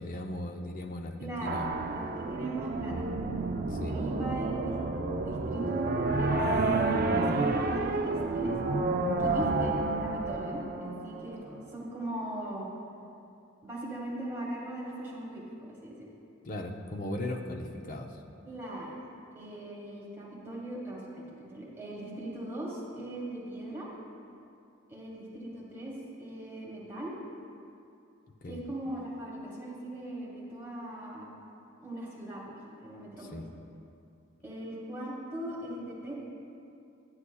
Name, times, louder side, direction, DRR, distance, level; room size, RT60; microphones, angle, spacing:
voice 1, 0.0-1.7 3.6-3.9 9.2-9.4 16.4-18.2 28.4-28.6 33.2-33.5, left 1 dB, 40° left, 3 dB, 0.5 m, -38 dB
voice 2, 1.2-1.6 1.9-2.9 3.8-4.8 5.2-6.5 7.1-7.9 8.3-8.6 9.2-12.7 13.6-16.1 18.4-19.0 19.3-23.9 24.9-27.1 28.5-31.3 31.8-33.4 34.4-36.1, right 1 dB, 10° right, -6 dB, 1.6 m, -39 dB
sound 1, 1.4-11.5, right 3 dB, 45° right, 0.4 m, -30 dB
9.7 x 9.5 x 2.2 m, 2.6 s
head